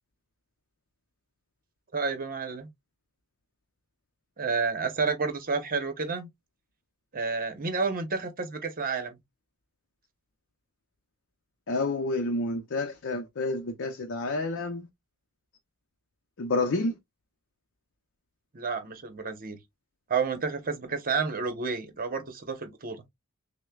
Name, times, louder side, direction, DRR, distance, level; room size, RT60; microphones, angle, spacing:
voice 1, 1.9-2.7 4.4-6.3 7.1-9.2 18.5-19.6 20.1-23.0, right 4 dB, 40° right, 0.9 m, -30 dB
voice 2, 11.7-14.9 16.4-17.0, left 2 dB, 55° left, 0.6 m, -29 dB
6.2 x 2.1 x 2.3 m
head